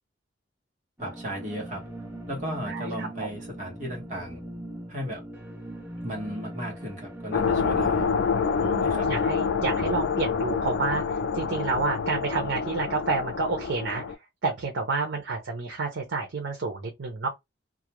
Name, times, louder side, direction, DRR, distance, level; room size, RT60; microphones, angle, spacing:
sound 1, 1.0-8.1, right 1 dB, 10° right, 0.7 m, -40 dB
voice 1, 1.0-1.9 2.3-4.4 4.9-5.2 6.0-8.1 8.8-9.1, equal, 45° right, 1.0 m, -35 dB
voice 2, 2.7-3.3 8.6-14.0 14.4-17.3, right 3 dB, 90° right, 0.6 m, -29 dB
sound 2, 7.3-14.1, left 5 dB, 85° left, 0.4 m, -27 dB
2.4 x 2.1 x 2.9 m
head